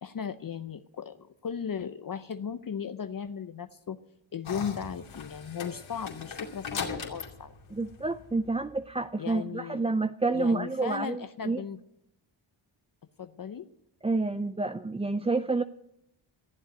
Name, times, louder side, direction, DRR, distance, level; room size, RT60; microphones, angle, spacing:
voice 1, 0.0-4.0 4.3-7.5 9.2-9.8 10.3-11.8 13.2-13.7, left 7 dB, 45° left, 11 dB, 0.7 m, -36 dB
sound 1, 4.4-8.7, left 5 dB, 75° left, 2.8 m, -39 dB
voice 2, 7.7-11.6 14.0-15.6, right 3 dB, 15° right, 10 dB, 0.5 m, -29 dB
14.5 x 7.9 x 9.1 m, 0.81 s
cardioid pair, 55°, 48 cm